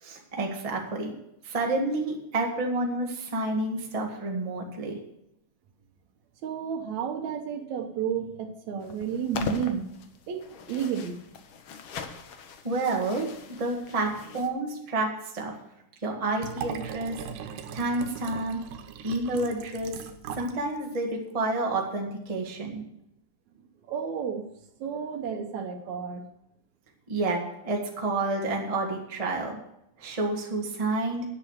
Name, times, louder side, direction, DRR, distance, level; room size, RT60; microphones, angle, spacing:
voice 1, 0.0-1.1 1.4-5.0 12.6-13.3 13.6-15.1 15.3-15.5 16.0-17.2 17.7-18.6 19.0-19.9 20.3-22.8 27.1-27.4 27.6-29.6 30.0-31.2, right 2 dB, 20° right, 0 dB, 1.1 m, -29 dB
voice 2, 6.4-9.9 10.3-11.2 23.9-24.5 24.8-26.2, right 7 dB, 70° right, 5 dB, 2.1 m, -31 dB
sound 1, 8.8-14.5, left 6 dB, 90° left, 1.1 m, -40 dB
Liquid, 16.4-20.6 21.0-21.1, right 8 dB, 90° right, 2.5 m, -39 dB
10.0 x 7.8 x 6.4 m, 0.81 s
omnidirectional pair, 3.7 m